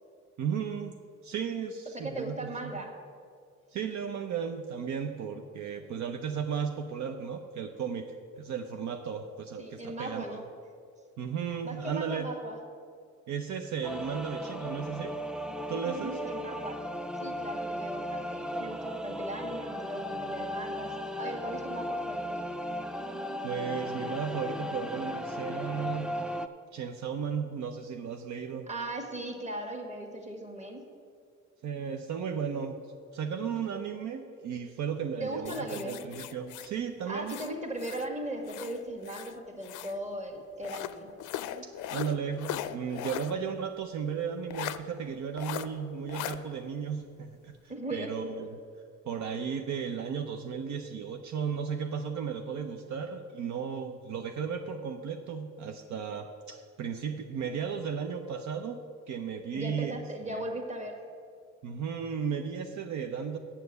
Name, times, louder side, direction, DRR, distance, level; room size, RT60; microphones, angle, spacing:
voice 1, 0.4-0.9 1.2-2.7 3.7-10.4 11.2-12.3 13.3-15.1 15.7-16.4 23.0-26.1 26.7-28.7 31.6-32.8 33.1-37.3 41.5-47.5 47.9-48.6 49.0-58.8 59.1-60.0 60.3-60.4 61.6-63.4, right 7 dB, 70° right, 5 dB, 0.7 m, -35 dB
voice 2, 1.9-2.9 9.6-10.4 11.6-12.6 15.8-16.8 17.2-22.4 28.7-30.8 35.2-36.0 37.1-41.1 47.7-48.1 59.5-61.0, right 1 dB, 25° right, 3 dB, 1.7 m, -38 dB
sound 1, 13.8-26.5, equal, 5° right, 0.4 m, -36 dB
sound 2, 35.4-38.1 38.4-40.0 40.6-43.4 43.7-43.8 44.5-44.8 45.4-45.7 46.1-46.4, left 12 dB, 85° left, 0.5 m, -39 dB
7.5 x 7.0 x 8.0 m, 2.2 s
cardioid pair, 90°, 30 cm